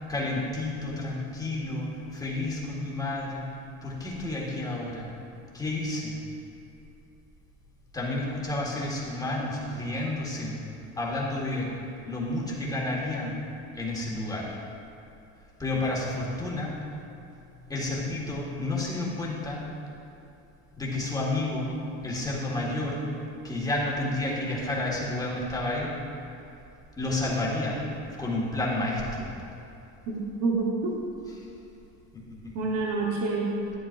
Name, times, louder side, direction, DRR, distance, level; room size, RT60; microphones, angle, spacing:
voice 1, 0.1-3.4 3.8-5.1 5.5-6.1 7.9-10.5 11.0-11.7 12.0-13.3 13.7-14.5 15.6-16.8 17.4-19.6 20.8-21.7 22.0-23.0 23.4-25.9 27.0-27.8 28.2-29.3 32.1-32.5, left 2 dB, 10° left, -5 dB, 1.8 m, -30 dB
voice 2, 30.1-31.0 32.5-33.6, right 3 dB, 50° right, -2 dB, 1.3 m, -28 dB
11.5 x 9.1 x 2.6 m, 2.8 s
cardioid pair, 135°, 32 cm